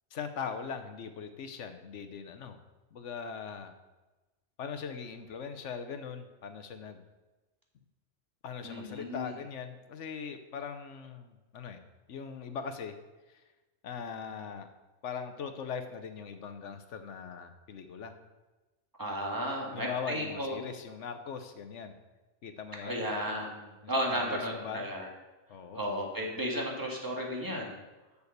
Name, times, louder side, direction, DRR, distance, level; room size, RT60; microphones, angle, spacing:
voice 1, 0.1-2.6 2.9-3.7 4.6-7.0 8.4-11.8 12.1-13.0 13.3-13.4 13.8-14.7 15.0-18.2 19.7-21.9 22.4-23.0 23.8-24.8 25.5-25.8, left 6 dB, 80° left, 8 dB, 1.2 m, -40 dB
voice 2, 8.6-9.3 19.0-20.6 22.8-25.1 25.7-27.8, equal, 15° right, -1 dB, 1.8 m, -34 dB
7.0 x 6.9 x 6.6 m, 1.1 s
omnidirectional pair, 1.2 m